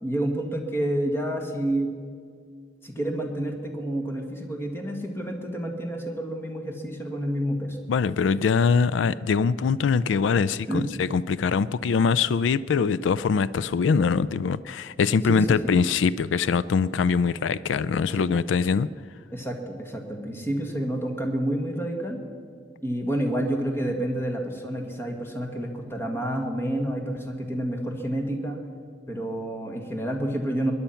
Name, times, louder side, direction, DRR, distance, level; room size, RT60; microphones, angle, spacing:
voice 1, 0.0-1.9 2.8-7.8 10.7-10.9 15.3-15.8 18.2-18.3 19.3-22.2 22.8-28.6 29.1-30.7, right 1 dB, 15° left, 2 dB, 1.7 m, -29 dB
voice 2, 7.9-18.9, left 5 dB, 85° left, 17 dB, 0.4 m, -23 dB
21.5 x 10.5 x 5.8 m, 2.1 s
head